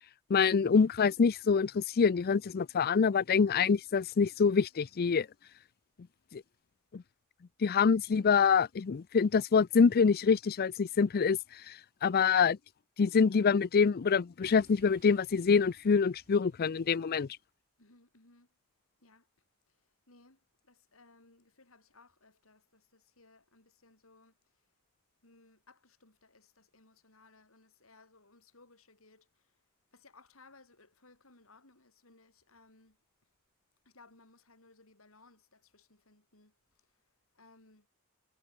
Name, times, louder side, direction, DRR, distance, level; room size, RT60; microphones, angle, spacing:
voice 1, 0.3-5.3 6.3-6.4 6.9-7.0 7.6-11.4 11.7-11.8 12.0-12.6 13.0-17.3, left 5 dB, 45° left, 0.4 m, -26 dB
Boom, 14.4-17.4, right 2 dB, 45° right, 6.3 m, -62 dB
voice 2, 17.8-18.5 19.0-24.7 25.2-29.6 29.9-33.3 33.8-37.9, left 3 dB, 75° left, 5.5 m, -62 dB
head